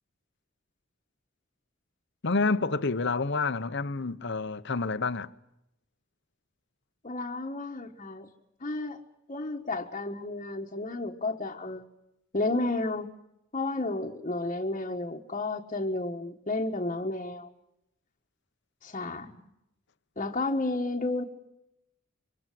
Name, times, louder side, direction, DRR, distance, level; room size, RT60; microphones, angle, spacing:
voice 1, 2.2-5.3, left 3 dB, 60° left, 1.0 m, -28 dB
voice 2, 7.0-8.3 8.6-9.0 9.3-11.8 12.3-13.1 13.5-17.5 18.8-19.3 20.2-21.2, left 2 dB, 35° left, 1.5 m, -32 dB
26.0 x 24.5 x 7.6 m
head